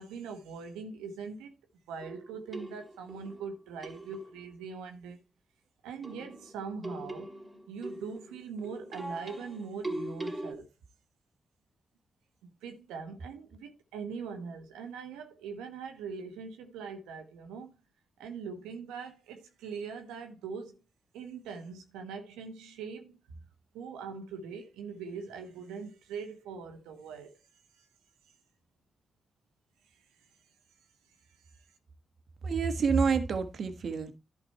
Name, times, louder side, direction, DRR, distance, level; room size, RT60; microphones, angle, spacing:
voice 1, 0.0-1.5 1.9-5.2 5.8-7.3 7.7-10.7 12.4-17.8 18.2-20.8 21.1-23.2 23.7-27.4 27.7-27.9, right 5 dB, 90° right, 1.3 m, -42 dB
sound 1, 2.0-4.5 6.0-10.5, right 1 dB, 20° right, 2.6 m, -41 dB
voice 2, 32.4-34.1, right 5 dB, 65° right, 1.4 m, -28 dB
11.0 x 5.1 x 4.3 m
supercardioid pair, 45°, 0 cm